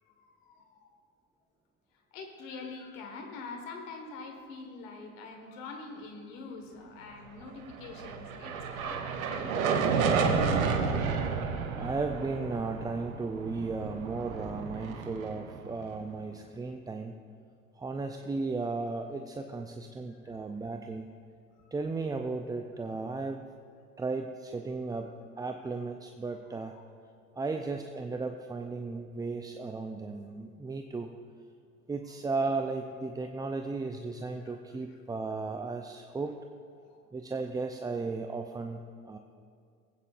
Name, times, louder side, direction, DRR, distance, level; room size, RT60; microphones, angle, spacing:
voice 1, 0.0-1.0 2.1-10.5 20.1-20.5 21.6-21.7 26.5-26.8 34.4-34.5 34.9-35.0 36.7-37.0, left 4 dB, 70° left, 3 dB, 1.6 m, -45 dB
sound 1, 7.7-16.1, right 5 dB, 85° right, 0.9 m, -31 dB
voice 2, 11.8-17.2 17.7-21.1 21.7-23.5 24.0-26.7 27.4-31.2 31.9-36.4 37.1-39.2, right 3 dB, 10° right, 5 dB, 0.4 m, -35 dB
19.5 x 8.7 x 2.5 m, 2.3 s
hypercardioid pair, 70°, 40 cm